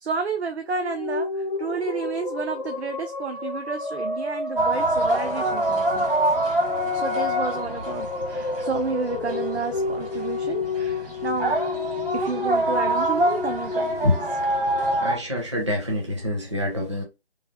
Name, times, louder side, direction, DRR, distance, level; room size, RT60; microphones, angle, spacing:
voice 1, 0.0-6.0 6.9-11.6 12.1-14.1, right 5 dB, 80° right, 0.5 m, -31 dB
sound 1, 0.6-15.1, left 3 dB, 50° left, 0.4 m, -31 dB
sound 2, 4.6-15.2, right 1 dB, 55° right, 1.1 m, -26 dB
voice 2, 15.0-17.0, left 1 dB, 30° right, 0.6 m, -26 dB
3.1 x 2.3 x 2.3 m
figure-of-eight pair, 165°, 32 cm